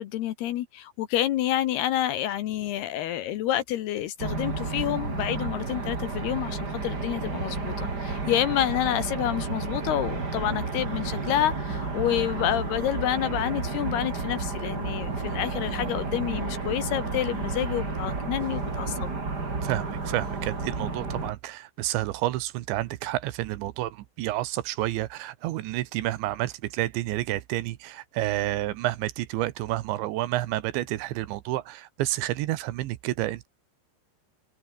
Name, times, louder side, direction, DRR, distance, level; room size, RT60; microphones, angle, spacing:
voice 1, 0.0-19.2, left 12 dB, 70° left, 2.8 m, -28 dB
sound 1, 4.2-21.3, right 3 dB, 25° right, 3.5 m, -31 dB
voice 2, 19.6-33.5, right 16 dB, 75° right, 3.2 m, -30 dB
omnidirectional pair, 5.5 m